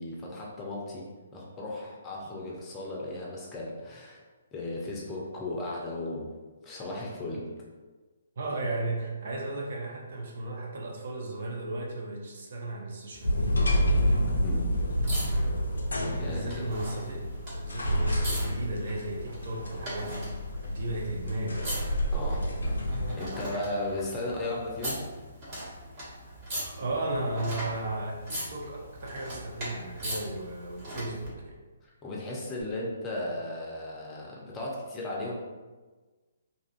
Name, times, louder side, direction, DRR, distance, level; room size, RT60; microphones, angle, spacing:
voice 1, 0.0-4.2 4.5-6.3 6.6-7.5 14.4-14.7 16.2-16.6 22.1-22.5 23.2-25.0 31.8-35.4, left 2 dB, 20° left, -3 dB, 0.5 m, -36 dB
voice 2, 8.4-13.9 15.7-17.3 17.5-20.3 20.7-21.8 26.2-31.6, right 2 dB, 55° right, -1 dB, 0.5 m, -35 dB
sound 1, 13.1-31.3 32.6-32.7, equal, 35° right, 1.1 m, -41 dB
sound 2, 13.2-23.1, equal, 70° left, 0.4 m, -29 dB
2.6 x 2.4 x 2.4 m, 1.3 s
figure-of-eight pair, 130°, 0 cm